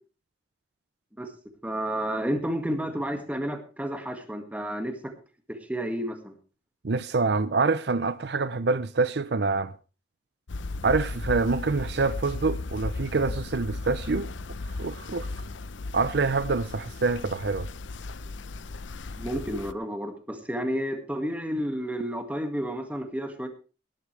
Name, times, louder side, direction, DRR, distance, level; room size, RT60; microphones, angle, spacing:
voice 1, 1.6-5.1 5.7-6.3 19.2-23.5, equal, 10° right, 1.9 m, -31 dB
voice 2, 6.8-9.7 10.8-14.3 14.8-15.3 15.9-17.7, right 4 dB, 60° right, 0.6 m, -26 dB
sound 1, 10.5-19.7, left 3 dB, 85° left, 0.7 m, -36 dB
18.0 x 12.0 x 3.3 m
head